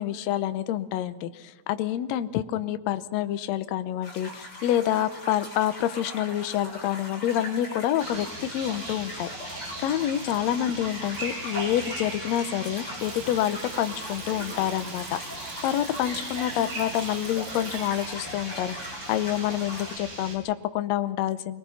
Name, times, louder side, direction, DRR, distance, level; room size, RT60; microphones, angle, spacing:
voice 1, 0.0-21.6, left 11 dB, 75° left, 11 dB, 1.6 m, -28 dB
sound 1, 4.0-20.0, left 1 dB, 35° left, 7.6 m, -40 dB
sound 2, 8.0-20.4, right 2 dB, 60° right, 8.3 m, -39 dB
Water tap faucet, 13.0-19.3 19.7-19.9, right 7 dB, 85° right, 3.7 m, -46 dB
26.5 x 21.0 x 5.8 m, 1.2 s
omnidirectional pair, 4.2 m